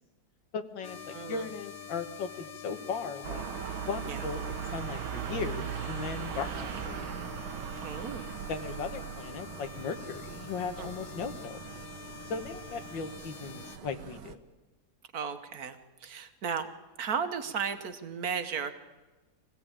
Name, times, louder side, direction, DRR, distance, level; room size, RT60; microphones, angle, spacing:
voice 1, 0.5-3.5 3.8-4.4 4.7-7.1 8.5-11.6 12.3-14.4, left 5 dB, 70° left, 9 dB, 1.9 m, -37 dB
sound 1, 0.8-13.8, left 7 dB, 45° left, 1.6 m, -46 dB
voice 2, 1.1-1.5 4.1-4.2 7.8-8.4 10.8-10.9 15.1-16.7 17.0-18.7, right 6 dB, 50° right, 9 dB, 1.6 m, -35 dB
sound 2, 3.2-14.3, right 9 dB, 85° right, 1.8 m, -39 dB
24.0 x 16.0 x 8.8 m, 1.2 s
omnidirectional pair, 2.2 m